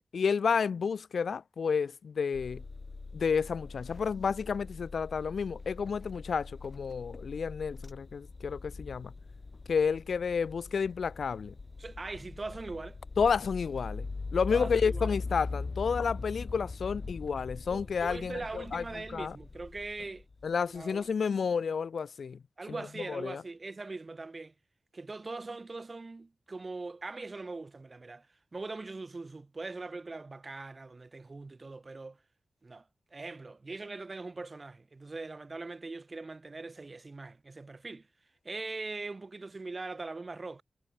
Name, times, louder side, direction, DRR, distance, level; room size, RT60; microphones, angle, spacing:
voice 1, 0.1-2.6 3.1-9.1 9.7-11.5 13.2-19.4 20.4-22.4 22.7-22.8 23.1-23.4, left 6 dB, 80° left, 0.8 m, -31 dB
sound 1, 2.3-20.8, left 3 dB, 40° left, 2.4 m, -42 dB
voice 2, 11.8-13.0 14.5-15.1 17.7-20.2 20.7-21.1 22.6-24.5 24.9-28.3 28.5-32.2 32.6-32.8 33.1-38.1 38.4-40.6, right 3 dB, 35° right, 1.3 m, -41 dB
wide cardioid pair, 140°, 0 cm